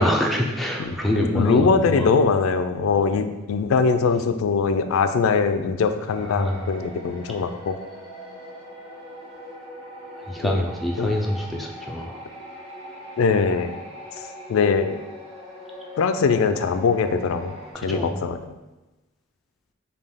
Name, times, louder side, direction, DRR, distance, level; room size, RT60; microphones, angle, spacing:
voice 1, 0.0-2.1 6.3-6.7 10.3-12.2 17.7-18.2, equal, ahead, -1 dB, 0.3 m, -25 dB
voice 2, 0.8-7.8 10.4-10.6 11.0-11.1 13.2-13.8 14.5-15.0 16.0-17.5 17.8-18.4, left 5 dB, 80° left, 9 dB, 0.3 m, -22 dB
sound 1, 6.1-17.7, equal, 30° right, 0.7 m, -41 dB
5.3 x 2.3 x 3.5 m, 1.1 s
head